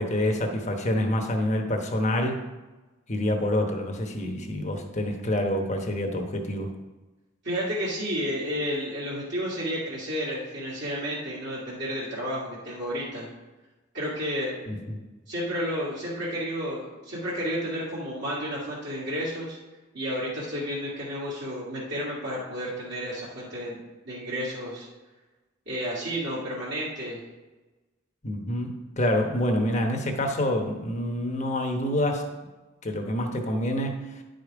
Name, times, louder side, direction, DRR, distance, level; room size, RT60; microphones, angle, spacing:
voice 1, 0.0-2.4 3.1-6.7 14.7-15.0 28.2-32.3 32.8-34.2, left 1 dB, 35° left, 3 dB, 1.1 m, -27 dB
voice 2, 7.4-13.3 13.9-14.6 15.3-19.6 19.9-24.9 25.7-27.2, equal, 60° right, -9 dB, 2.3 m, -31 dB
10.0 x 5.2 x 4.8 m, 1.2 s
head